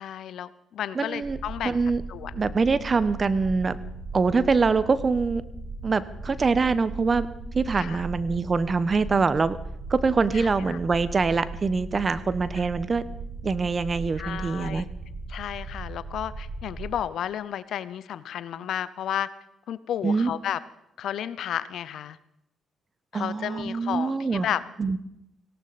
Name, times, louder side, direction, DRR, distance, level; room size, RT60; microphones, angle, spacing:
voice 1, 0.0-1.8 2.1-2.6 7.7-8.0 8.3-8.4 10.3-10.8 12.6-12.7 14.2-14.9 15.3-19.3 19.7-20.6 21.0-22.2 23.1-24.6, left 10 dB, 70° left, 16 dB, 0.7 m, -32 dB
voice 2, 0.9-1.4 1.6-2.0 2.4-3.8 4.1-5.4 5.8-7.3 7.5-9.6 9.9-13.0 13.4-14.8 20.0-20.3 23.1-24.5 24.8-25.0, right 4 dB, 40° right, 15 dB, 1.0 m, -24 dB
sound 1, 1.2-16.9, right 3 dB, 65° right, 4.6 m, -38 dB
18.5 x 17.5 x 4.2 m, 0.82 s
hypercardioid pair, 50°, 0 cm